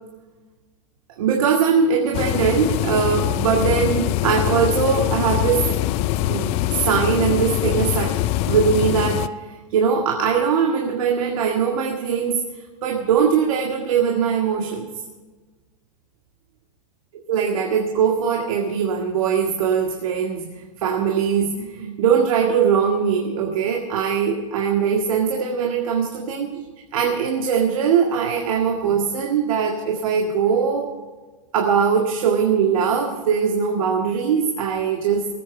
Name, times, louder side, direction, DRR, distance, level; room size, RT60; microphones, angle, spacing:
voice 1, 1.2-5.8 6.3-8.2 8.5-9.3 9.7-12.4 12.8-14.9 17.3-20.5 20.8-26.6 26.9-30.9 31.5-35.3, right 6 dB, 80° right, 1 dB, 2.0 m, -21 dB
sound 1, 2.1-9.3, left 14 dB, 40° left, 0.5 m, -23 dB
19.5 x 9.0 x 5.4 m, 1.3 s
supercardioid pair, 150°, 17 cm